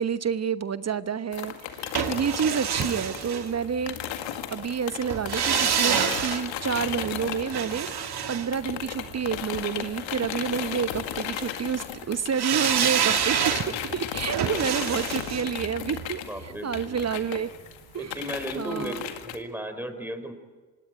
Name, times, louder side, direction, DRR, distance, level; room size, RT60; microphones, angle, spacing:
voice 1, 0.0-7.9 8.3-17.5 17.9-18.2 18.6-19.0, right 7 dB, 30° right, 14 dB, 1.0 m, -29 dB
sound 1, 1.3-8.2 8.5-19.4, left 10 dB, 65° left, 2.0 m, -35 dB
sound 2, 2.0-4.1 5.1-9.4 12.4-17.4 17.7-17.8, right 8 dB, 50° right, 2.5 m, -28 dB
voice 2, 16.3-17.0 17.9-20.3, equal, 5° right, 9 dB, 4.4 m, -35 dB
26.0 x 19.5 x 9.3 m, 1.3 s
hypercardioid pair, 50°, 48 cm